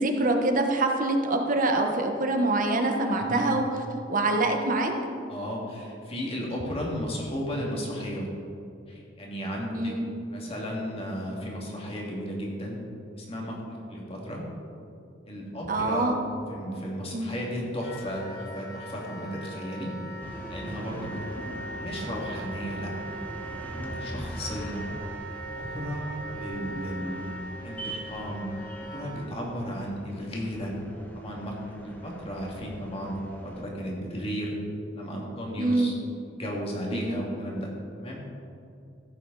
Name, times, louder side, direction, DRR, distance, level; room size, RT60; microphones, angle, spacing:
voice 1, 0.0-3.7 4.1-4.9 9.7-10.1 15.7-16.2 17.1-17.3 21.4-21.6 24.1-24.3 35.6-36.0 36.9-37.2, right 2 dB, 45° right, 3 dB, 1.1 m, -25 dB
voice 2, 5.3-8.3 8.9-9.9 10.3-12.8 13.1-14.5 15.3-16.1 16.5-20.0 20.5-21.5 21.8-22.9 23.4-24.8 25.5-26.1 26.3-27.3 27.6-28.5 28.8-30.7 31.1-34.6 35.0-35.9 36.3-37.7 38.0-38.2, equal, 30° left, -3 dB, 2.3 m, -34 dB
Wind instrument woodwind instrument, 17.8-29.2, right 1 dB, 50° left, 1.7 m, -40 dB
sound 1, 20.2-33.6, right 1 dB, 10° left, 1.1 m, -42 dB
14.5 x 8.4 x 4.0 m, 2.7 s
head